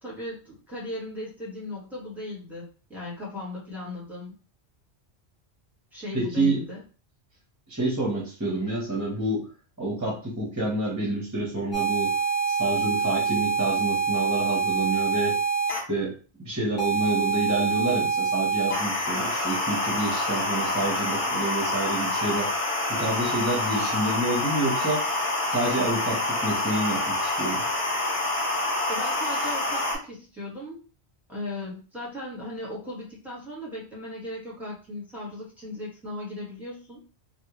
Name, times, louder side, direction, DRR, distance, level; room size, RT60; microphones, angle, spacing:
voice 1, 0.0-4.3 5.9-6.8 28.9-30.9 31.3-37.0, left 1 dB, ahead, -7 dB, 1.4 m, -37 dB
voice 2, 6.1-6.6 7.7-9.4 9.8-12.1 12.5-15.4 15.9-22.5 22.9-27.6, right 2 dB, 20° right, -4 dB, 0.7 m, -28 dB
sound 1, 11.7-15.8 16.8-29.9, right 1 dB, 50° left, 1.2 m, -26 dB
3.4 x 2.3 x 3.0 m, 0.37 s
omnidirectional pair, 1.2 m